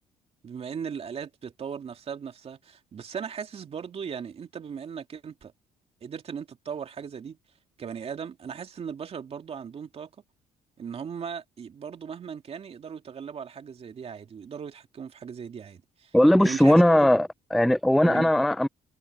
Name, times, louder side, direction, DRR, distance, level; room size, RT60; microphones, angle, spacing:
voice 1, 0.4-5.5 6.0-7.4 7.8-10.1 10.8-16.2 16.4-17.1 18.0-18.3, right 7 dB, 45° right, 2.5 m, -38 dB
voice 2, 16.1-18.7, left 1 dB, ahead, 0.3 m, -19 dB
supercardioid pair, 85°, 14 cm